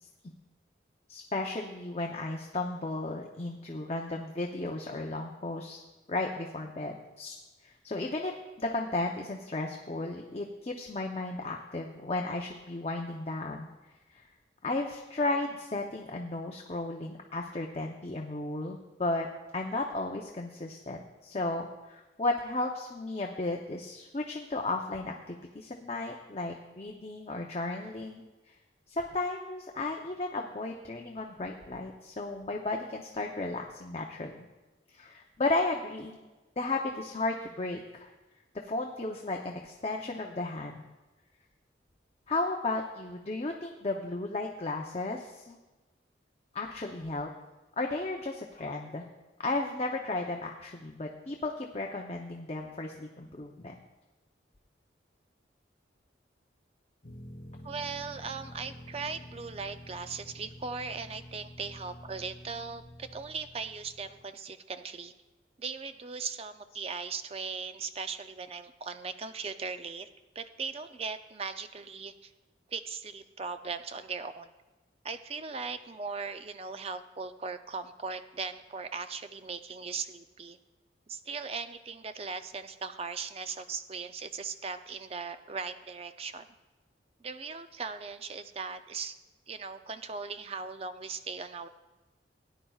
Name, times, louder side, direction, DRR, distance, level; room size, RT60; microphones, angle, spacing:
voice 1, 1.1-5.8 6.1-7.4 7.6-13.7 14.1-14.3 14.6-19.3 19.5-28.5 28.9-34.4 34.9-36.2 36.6-38.1 38.6-40.8 42.3-45.6 46.5-47.3 47.8-49.0 49.4-53.7, left 2 dB, 35° left, 1 dB, 0.7 m, -34 dB
sound 1, 57.0-64.2, equal, 50° left, 2.9 m, -49 dB
voice 2, 57.6-65.1 65.6-70.1 70.4-72.3 72.7-74.5 75.0-80.6 81.1-86.5 87.2-89.2 89.5-91.7, right 5 dB, 35° right, 10 dB, 0.4 m, -38 dB
17.0 x 10.0 x 2.4 m, 1.2 s
head